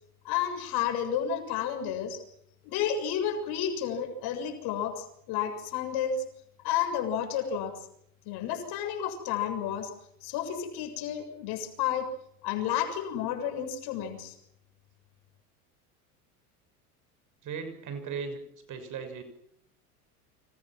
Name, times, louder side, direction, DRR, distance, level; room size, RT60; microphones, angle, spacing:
voice 1, 0.2-2.2 2.6-6.2 6.6-7.7 8.3-9.9 10.2-12.1 12.4-14.3, left 9 dB, 55° left, 6 dB, 7.2 m, -31 dB
voice 2, 17.4-18.4 18.7-19.2, right 6 dB, 40° right, 9 dB, 6.5 m, -37 dB
29.5 x 26.5 x 6.2 m, 0.74 s
hypercardioid pair, 80°, 46 cm